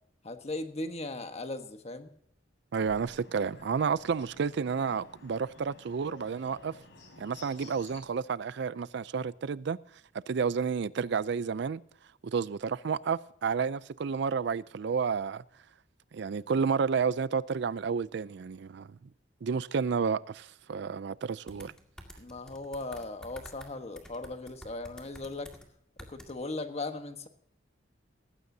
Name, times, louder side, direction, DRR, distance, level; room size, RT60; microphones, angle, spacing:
voice 1, 0.2-2.1 20.8-21.0 22.2-25.5 26.1-27.3, left 2 dB, 35° left, 1.3 m, -38 dB
voice 2, 2.7-6.7 7.2-9.8 10.3-11.8 12.2-15.4 16.1-19.0 19.4-21.7, right 6 dB, 65° right, 0.4 m, -31 dB
Bird, 2.8-8.0, left 2 dB, 75° left, 4.7 m, -53 dB
sound 1, 21.5-23.7 23.9-25.6 26.0-26.3, equal, 5° left, 2.0 m, -49 dB
18.5 x 15.5 x 2.7 m
head